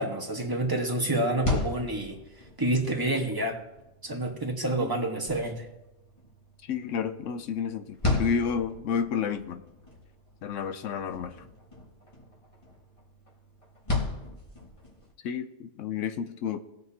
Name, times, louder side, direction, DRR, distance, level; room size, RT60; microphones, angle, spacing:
voice 1, 0.0-2.2 2.6-3.6 4.0-5.7, right 1 dB, 20° right, 0 dB, 1.3 m, -28 dB
sound 1, 1.1-15.1, left 2 dB, 25° left, 1.6 m, -36 dB
voice 2, 6.7-9.6 10.4-11.3 15.2-16.6, left 7 dB, 85° left, 10 dB, 1.0 m, -30 dB
19.5 x 6.7 x 2.8 m, 0.95 s
omnidirectional pair, 1.3 m